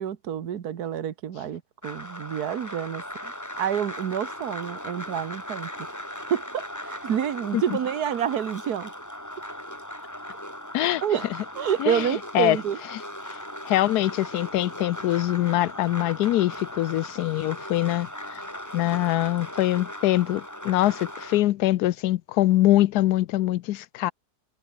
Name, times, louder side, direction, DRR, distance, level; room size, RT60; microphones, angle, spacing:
voice 1, 0.0-5.7 6.3-8.9 11.0-11.2 11.6-12.8, right 9 dB, 70° right, 1.8 m, -28 dB
sound 1, 1.8-21.4, equal, 10° left, 5.9 m, -38 dB
voice 2, 11.8-12.6 13.3-13.4 13.6-18.4 18.7-24.1, left 15 dB, 75° left, 1.1 m, -23 dB
omnidirectional pair, 1.7 m